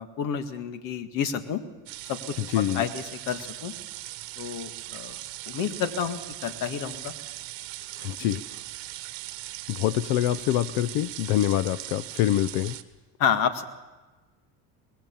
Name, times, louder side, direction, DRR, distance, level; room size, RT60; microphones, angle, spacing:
voice 1, 0.0-1.6 2.1-3.7 4.4-5.2 5.5-7.1 8.3-8.4 13.2-13.6, left 7 dB, 55° left, 9 dB, 1.8 m, -30 dB
sound 1, 1.9-12.8, right 16 dB, 65° right, 1.4 m, -39 dB
voice 2, 2.5-2.8 8.0-8.4 9.7-12.8, left 13 dB, 85° left, 15 dB, 0.7 m, -25 dB
24.0 x 20.0 x 7.1 m, 1.2 s
cardioid pair, 155°, 38 cm